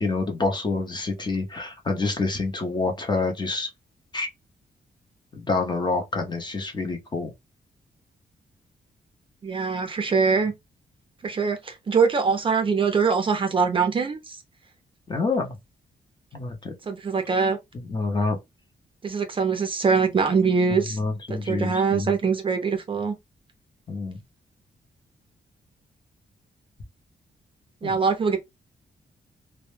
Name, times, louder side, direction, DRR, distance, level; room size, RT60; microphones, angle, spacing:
voice 1, 0.0-3.7 4.1-4.3 5.3-7.3 15.1-15.6 16.3-16.7 17.7-18.4 20.7-22.1 23.9-24.2 27.8-28.0, left 3 dB, 25° left, 0.6 m, -27 dB
voice 2, 9.4-10.5 11.2-14.4 16.9-17.6 19.0-21.0 21.3-23.1 27.8-28.4, right 5 dB, 30° right, 0.4 m, -23 dB
2.1 x 2.0 x 3.0 m
wide cardioid pair, 160°, 17 cm